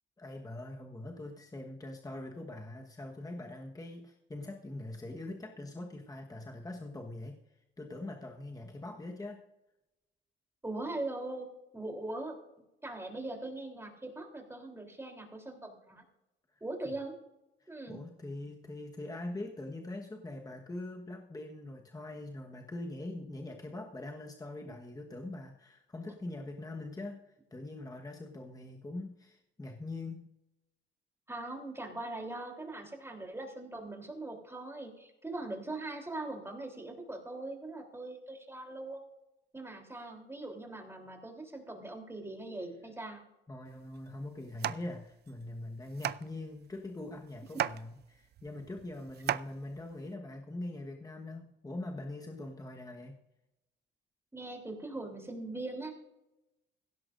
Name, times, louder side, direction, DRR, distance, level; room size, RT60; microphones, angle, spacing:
voice 1, 0.2-7.4 7.8-9.4 17.6-30.3 43.5-53.2, left 2 dB, 20° left, 1 dB, 1.3 m, -43 dB
voice 2, 10.6-11.5 11.7-12.4 12.8-16.0 16.6-17.2 17.7-18.0 31.3-39.1 39.5-43.2 47.5-47.6 54.3-55.9, right 2 dB, 10° right, 2 dB, 3.5 m, -41 dB
sound 1, 43.7-50.1, right 11 dB, 55° right, 0.5 m, -39 dB
16.5 x 15.5 x 2.6 m, 0.92 s
cardioid pair, 90°, 20 cm